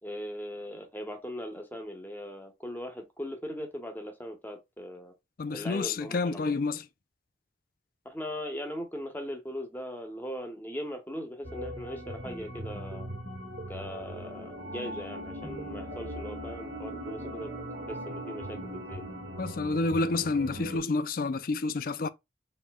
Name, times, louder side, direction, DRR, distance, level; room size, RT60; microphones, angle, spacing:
voice 1, 0.0-5.1 5.5-6.6 8.0-13.1 13.7-17.6 17.9-19.0, equal, 10° left, 1.1 m, -39 dB
voice 2, 5.4-6.8 19.4-22.1, left 3 dB, 50° left, 0.4 m, -29 dB
sound 1, 11.4-20.8, equal, 75° right, 1.6 m, -39 dB
4.5 x 3.6 x 2.2 m
head